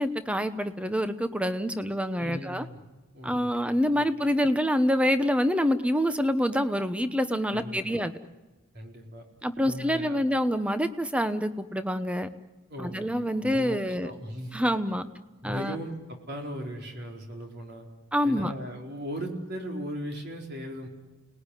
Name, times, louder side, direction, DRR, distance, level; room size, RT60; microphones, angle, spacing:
voice 1, 0.0-2.7 3.2-8.1 9.4-12.3 12.8-14.1 14.5-15.1 15.4-15.8 18.1-18.5, equal, 5° right, 10 dB, 0.9 m, -26 dB
voice 2, 2.2-2.8 3.1-3.7 3.9-4.1 7.5-8.0 8.7-9.2 9.6-10.2 12.7-13.1 13.4-13.8 14.0-14.6 15.4-17.9 18.2-20.9, equal, 50° right, 1 dB, 4.5 m, -38 dB
30.0 x 20.0 x 10.0 m, 1.2 s
head